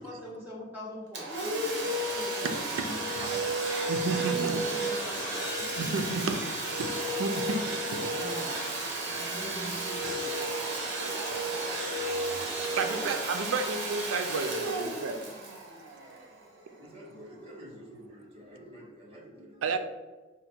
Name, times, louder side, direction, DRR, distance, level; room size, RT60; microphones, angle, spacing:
voice 1, 0.0-3.7 4.0-4.4 4.6-5.9 7.9-8.5 9.0-10.4 12.6-13.1, equal, 10° right, -7 dB, 1.3 m, -43 dB
Domestic sounds home sounds, 1.1-16.6, right 2 dB, 60° right, 0.9 m, -33 dB
voice 2, 2.4-3.2 3.9-4.6 5.8-6.9 7.2-8.2 12.6-15.2 19.6-19.8, right 3 dB, 85° right, 8 dB, 0.4 m, -32 dB
sound 1, 2.6-9.1, left 3 dB, 55° left, 0.6 m, -47 dB
voice 3, 15.6-16.3 16.8-19.8, equal, 30° right, -4 dB, 1.0 m, -51 dB
4.9 x 2.1 x 4.3 m, 1.3 s
head